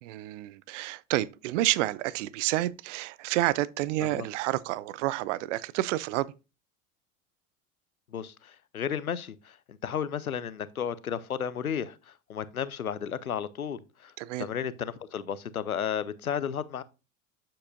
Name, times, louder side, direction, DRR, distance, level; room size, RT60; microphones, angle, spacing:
voice 1, 0.0-6.3 14.2-14.5, right 16 dB, 60° right, 0.6 m, -29 dB
voice 2, 8.1-14.1 14.4-16.8, left 8 dB, 90° left, 0.7 m, -33 dB
8.7 x 7.5 x 2.6 m
figure-of-eight pair, 75°, 42 cm